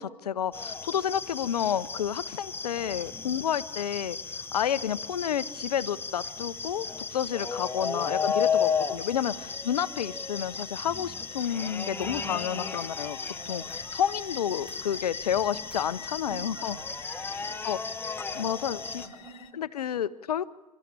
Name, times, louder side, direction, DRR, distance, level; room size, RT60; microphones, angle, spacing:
voice 1, 0.0-13.2 13.5-16.8 17.6-17.8 18.3-19.0 19.6-20.5, left 9 dB, 75° left, 16 dB, 0.8 m, -30 dB
sound 1, 0.5-19.1, left 5 dB, 10° left, 1.2 m, -34 dB
voice 2, 3.2-3.6 7.7-8.3 8.5-8.9 9.1-9.8 12.0-12.9 13.2-13.9 16.3-17.7 18.3-19.6, right 3 dB, 65° right, 5 dB, 6.4 m, -49 dB
sound 2, 5.2-19.5, left 10 dB, 30° left, 1.2 m, -51 dB
Tools, 12.0-12.3 12.8-13.2 13.7-14.1 14.7-15.2 15.7-16.3, left 1 dB, 5° right, 6.0 m, -56 dB
29.5 x 13.5 x 8.8 m, 1.1 s
figure-of-eight pair, 90°, 20 cm